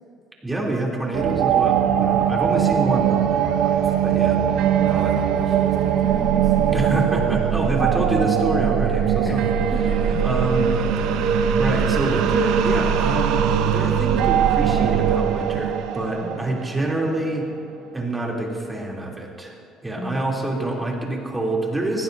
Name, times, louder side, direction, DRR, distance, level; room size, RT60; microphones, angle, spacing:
voice 1, 0.4-4.4 4.8-5.2 6.7-9.4 10.1-10.7 11.6-17.5 17.9-19.5 19.8-22.0, right 2 dB, 15° right, -2 dB, 3.2 m, -26 dB
sound 1, 1.1-17.4, right 8 dB, 75° right, 0.9 m, -21 dB
voice 2, 4.7-8.1 8.9-10.1 11.4-11.6 16.2-16.6 20.0-20.8, left 1 dB, 25° left, -1 dB, 1.9 m, -36 dB
20.0 x 16.0 x 2.7 m, 2.7 s
supercardioid pair, 95°, 0 cm